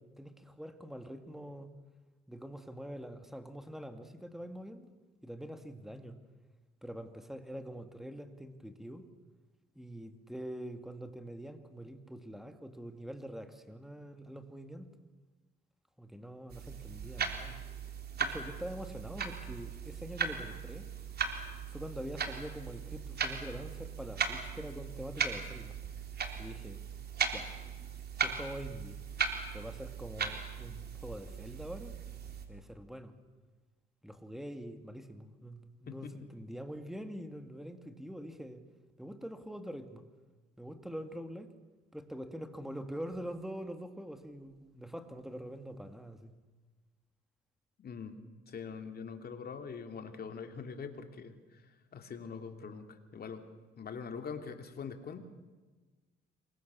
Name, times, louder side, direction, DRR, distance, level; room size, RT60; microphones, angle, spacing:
voice 1, 0.0-1.7 2.3-4.9 5.2-6.2 6.8-9.0 9.7-14.9 16.0-17.6 18.2-20.9 21.7-25.8 26.4-26.8 27.3-27.5 28.2-29.0 29.5-31.9 32.5-33.2 34.0-38.6 39.0-40.0 40.6-41.5 41.9-46.3, equal, ahead, 7 dB, 2.5 m, -44 dB
sound 1, 16.5-32.5, right 6 dB, 55° right, 3.6 m, -38 dB
voice 2, 47.8-48.1 48.5-53.4 53.8-55.2, left 6 dB, 50° left, 6 dB, 3.0 m, -43 dB
27.5 x 23.5 x 7.1 m, 1.3 s
cardioid pair, 90°, 20 cm